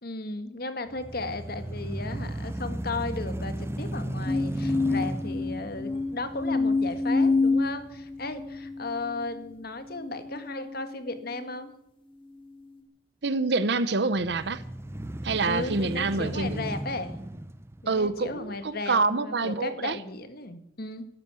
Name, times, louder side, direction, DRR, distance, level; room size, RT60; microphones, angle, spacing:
voice 1, 0.0-11.7 15.5-17.2 17.8-21.1, left 2 dB, 55° left, 9 dB, 1.8 m, -35 dB
sound 1, 0.9-9.0 9.5-9.6 14.1-18.6, right 1 dB, 15° right, 0.5 m, -36 dB
sound 2, 4.2-11.7 12.3-12.8, left 3 dB, 30° left, 2.6 m, -29 dB
voice 2, 13.2-14.6 15.2-16.6 17.9-20.0, right 3 dB, 65° right, 14 dB, 0.8 m, -26 dB
12.5 x 12.0 x 8.4 m, 0.82 s
head